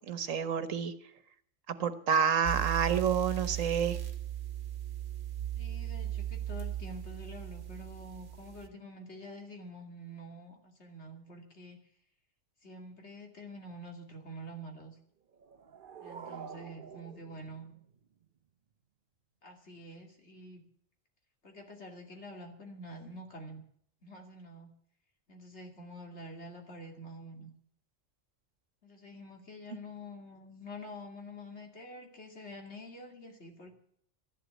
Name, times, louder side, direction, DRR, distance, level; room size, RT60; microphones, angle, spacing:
voice 1, 0.1-0.9 1.7-4.0, right 7 dB, 85° right, 12 dB, 1.5 m, -29 dB
sound 1, 2.4-8.7, right 11 dB, 70° right, 1.5 m, -37 dB
voice 2, 5.6-11.8 12.6-15.0 16.0-17.7 19.4-20.6 21.4-23.6 24.0-24.7 25.3-27.5 28.8-33.7, equal, 60° left, 2 dB, 2.9 m, -47 dB
sound 2, 15.3-18.3, right 6 dB, 45° right, 0.9 m, -49 dB
13.0 x 11.5 x 8.1 m, 0.66 s
omnidirectional pair, 1.3 m